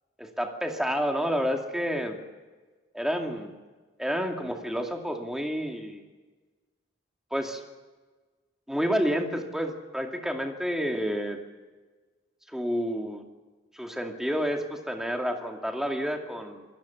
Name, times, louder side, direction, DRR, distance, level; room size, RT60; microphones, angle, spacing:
voice 1, 0.2-2.2 2.9-3.5 4.0-6.0 7.3-7.6 8.7-11.4 12.5-13.2 13.7-16.7, equal, 5° right, 3 dB, 2.4 m, -29 dB
27.5 x 18.0 x 7.2 m, 1.3 s
head